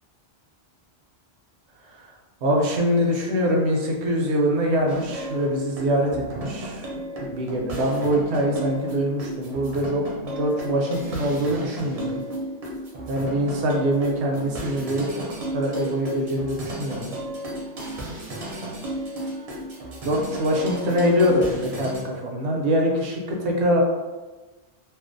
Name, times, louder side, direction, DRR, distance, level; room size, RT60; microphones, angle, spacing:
voice 1, 2.4-6.9 7.3-12.2 13.1-15.2 15.5-17.1 20.0-23.8, equal, 75° right, 0 dB, 0.8 m, -24 dB
sound 1, 4.9-22.0, right 1 dB, 50° right, 0.5 m, -34 dB
2.4 x 2.0 x 2.5 m, 1.2 s
omnidirectional pair, 1.1 m